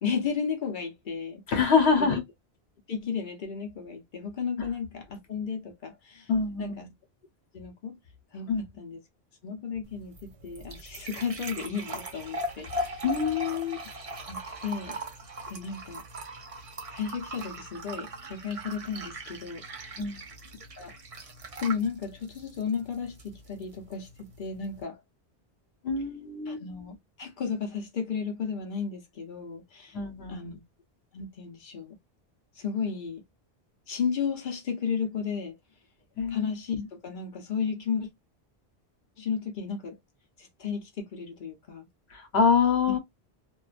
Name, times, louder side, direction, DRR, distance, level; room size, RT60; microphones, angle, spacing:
voice 1, 0.0-1.4 2.0-2.2 2.9-6.3 6.6-6.9 7.5-8.0 8.3-9.0 9.4-13.0 14.3-15.0 15.5-16.0 16.9-19.6 20.8-21.0 21.6-25.0 26.5-30.0 30.3-30.6 31.1-32.0 32.6-33.2 33.9-35.6 36.3-38.1 39.2-40.0 40.4-41.9 42.9-43.0, left 6 dB, 55° left, 0.8 m, -33 dB
voice 2, 1.5-2.2 6.3-6.9 8.5-8.6 13.0-13.8 20.0-20.3 25.8-26.6 29.9-30.5 36.2-36.5 42.1-43.0, left 5 dB, 75° left, 1.1 m, -25 dB
sound 1, 9.8-24.8, equal, 40° right, 0.6 m, -40 dB
2.6 x 2.2 x 2.4 m
omnidirectional pair, 1.1 m